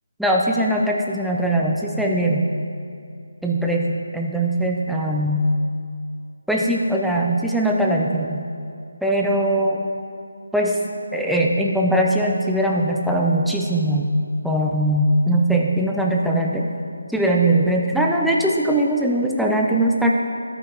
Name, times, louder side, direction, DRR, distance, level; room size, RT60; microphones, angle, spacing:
voice 1, 0.2-2.5 3.4-5.5 6.5-8.4 9.0-9.9 10.5-10.8 11.1-14.1 14.4-16.7 17.1-20.1, right 1 dB, ahead, -2 dB, 0.6 m, -20 dB
12.0 x 8.9 x 3.0 m, 2.4 s
figure-of-eight pair, 155°, 0 cm